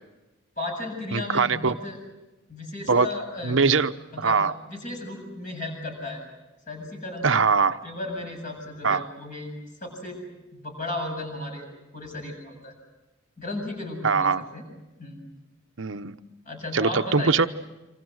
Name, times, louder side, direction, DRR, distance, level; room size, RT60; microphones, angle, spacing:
voice 1, 0.6-2.0 2.5-3.6 4.1-4.4 4.7-6.2 6.7-7.3 7.8-9.5 9.8-10.2 10.5-11.6 11.9-12.7 13.4-14.6 15.0-15.2 16.5-17.4, left 2 dB, 40° left, 3 dB, 7.7 m, -34 dB
voice 2, 1.1-1.7 2.9-3.1 3.4-3.9 4.2-4.5 7.2-7.8 8.8-9.1 14.0-14.4 15.8-16.2 16.7-17.5, right 4 dB, 65° right, 10 dB, 0.9 m, -22 dB
28.0 x 26.0 x 6.4 m, 1.0 s
head